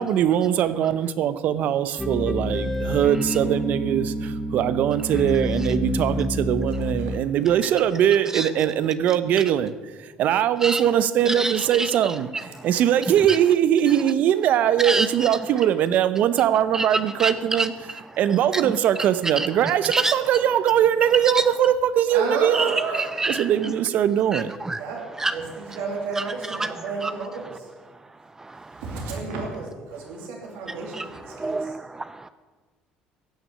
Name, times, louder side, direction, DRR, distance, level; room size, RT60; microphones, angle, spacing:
voice 1, 0.0-17.7 18.2-22.8 23.3-24.5, right 10 dB, 65° right, 14 dB, 0.8 m, -21 dB
sound 1, 2.0-7.2, left 1 dB, 5° left, 2.3 m, -28 dB
voice 2, 11.3-11.9 13.3-13.4 14.8-15.3 16.7-16.9 17.2-17.7 18.5-18.6 19.4-19.5 19.9-20.1 21.3-21.4 22.5-23.7 24.3-24.8 25.2-25.3 26.6-26.7 27.0-27.1 28.4-28.8 30.9-32.3, right 2 dB, 15° right, 13 dB, 0.4 m, -27 dB
voice 3, 22.1-23.1 24.7-25.0 25.3-27.9 28.8-31.8, right 4 dB, 85° right, 1 dB, 2.9 m, -32 dB
16.0 x 6.2 x 10.0 m, 1.4 s
supercardioid pair, 90°, 3 cm